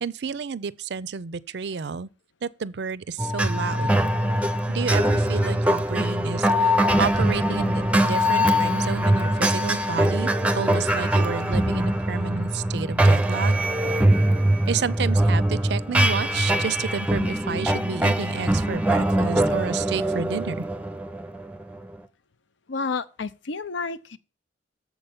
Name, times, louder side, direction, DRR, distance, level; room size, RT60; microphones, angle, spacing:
voice 1, 0.0-2.1 2.4-4.0 4.7-13.6 14.7-20.6, right 5 dB, 65° right, 0.4 m, -31 dB
sound 1, 3.2-22.0, right 1 dB, 5° right, 0.5 m, -22 dB
voice 2, 22.7-24.2, left 4 dB, 85° left, 0.6 m, -30 dB
7.1 x 5.6 x 7.1 m
head